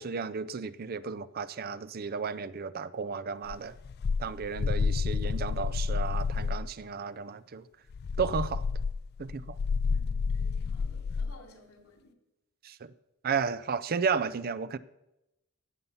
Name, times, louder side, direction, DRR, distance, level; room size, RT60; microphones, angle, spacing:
voice 1, 0.0-3.7 4.2-7.6 8.2-8.6 9.2-9.6 12.6-12.9 13.2-14.8, right 5 dB, 45° right, 0.5 m, -33 dB
sound 1, 3.5-6.7 7.9-11.4, left 5 dB, 50° left, 0.3 m, -30 dB
voice 2, 9.9-12.2, left 1 dB, 90° left, 3.1 m, -55 dB
16.5 x 5.6 x 7.0 m
head